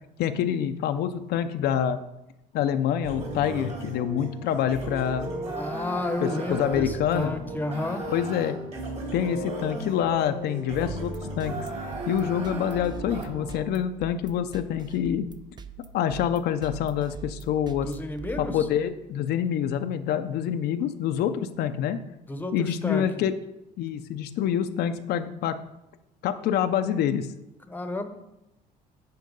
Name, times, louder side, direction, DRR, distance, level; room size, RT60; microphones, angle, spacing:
voice 1, 0.2-2.0 2.5-5.3 6.2-7.3 8.1-8.6 9.1-11.5 12.1-15.3 15.9-17.9 18.4-22.0 22.5-23.3 23.8-25.6 26.2-27.3, left 9 dB, 75° left, 8 dB, 0.5 m, -26 dB
sound 1, 3.0-13.6, right 2 dB, 40° right, 2.6 m, -35 dB
voice 2, 5.6-8.0 17.8-18.5 22.3-23.0 27.7-28.1, left 2 dB, 10° left, 8 dB, 0.9 m, -31 dB
sound 2, 10.9-19.1, right 4 dB, 25° right, 0.5 m, -44 dB
9.3 x 4.6 x 5.3 m, 0.91 s
cardioid pair, 110°, 17 cm